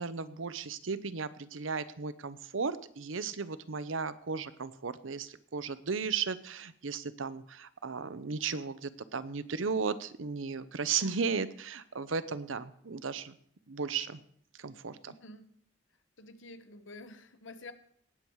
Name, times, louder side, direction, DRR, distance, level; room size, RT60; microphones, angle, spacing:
voice 1, 0.0-13.3 13.7-14.2 14.6-15.1, right 5 dB, 85° right, 14 dB, 0.8 m, -35 dB
voice 2, 15.0-15.5 16.2-17.7, left 2 dB, 75° left, 10 dB, 1.1 m, -49 dB
18.0 x 7.3 x 4.7 m, 0.64 s
head